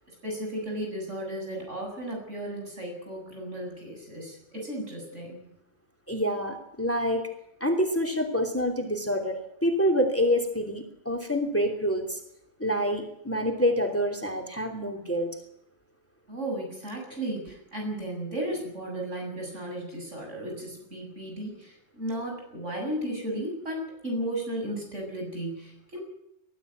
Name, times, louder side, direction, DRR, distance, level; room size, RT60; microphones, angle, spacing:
voice 1, 0.2-5.4 16.3-26.0, right 1 dB, 70° right, 1 dB, 8.0 m, -34 dB
voice 2, 6.1-7.2 7.6-12.2 12.6-15.3, equal, 10° left, 5 dB, 3.0 m, -27 dB
22.0 x 13.5 x 9.4 m, 0.79 s
omnidirectional pair, 1.3 m